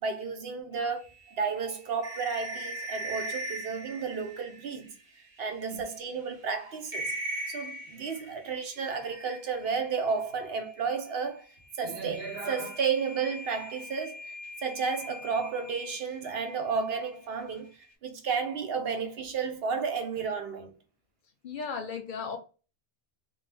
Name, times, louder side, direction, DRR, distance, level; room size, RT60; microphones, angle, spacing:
voice 1, 0.0-4.9 5.4-7.1 7.5-11.5 11.8-14.2 14.6-17.7 18.0-20.7, right 5 dB, 70° right, 0.9 m, -32 dB
sound 1, 1.0-5.4 5.9-6.0 6.3-6.5 6.9-9.8 12.1-16.5, right 1 dB, 5° right, 1.0 m, -40 dB
voice 2, 21.4-22.4, left 5 dB, 60° left, 0.6 m, -36 dB
2.7 x 2.1 x 3.2 m
omnidirectional pair, 1.1 m